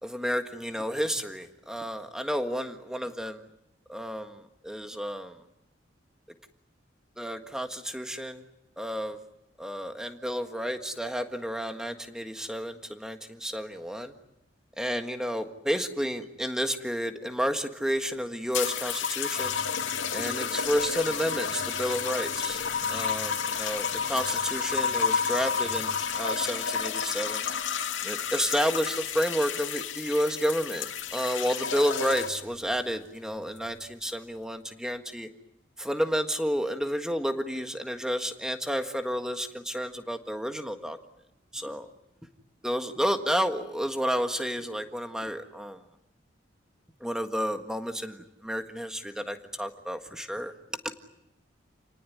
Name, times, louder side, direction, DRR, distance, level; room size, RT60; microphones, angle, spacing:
voice 1, 0.0-3.4 3.9-5.3 7.2-8.4 8.8-9.2 9.6-14.1 14.8-19.6 20.1-22.6 22.9-27.4 28.0-35.3 35.8-41.0 41.5-41.9 42.6-45.8 47.0-50.8, equal, 5° right, 6 dB, 1.6 m, -31 dB
sound 1, 18.5-32.5 33.4-33.8, left 6 dB, 85° left, 2.4 m, -31 dB
29.0 x 18.5 x 9.4 m, 0.89 s
head